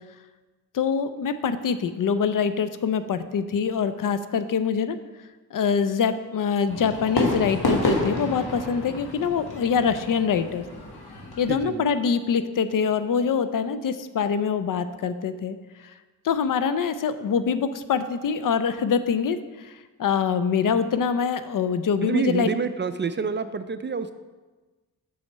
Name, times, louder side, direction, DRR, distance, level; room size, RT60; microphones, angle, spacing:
voice 1, 0.7-5.0 5.5-10.6 11.4-15.6 15.8-15.9 16.2-22.5, left 6 dB, 60° left, 12 dB, 0.5 m, -24 dB
Fireworks, 6.7-11.7, left 1 dB, 75° left, 1.4 m, -29 dB
voice 2, 11.5-11.8 22.0-24.1, right 5 dB, 30° right, 11 dB, 0.4 m, -27 dB
6.3 x 4.4 x 5.4 m, 1.3 s
cardioid pair, 50°, 37 cm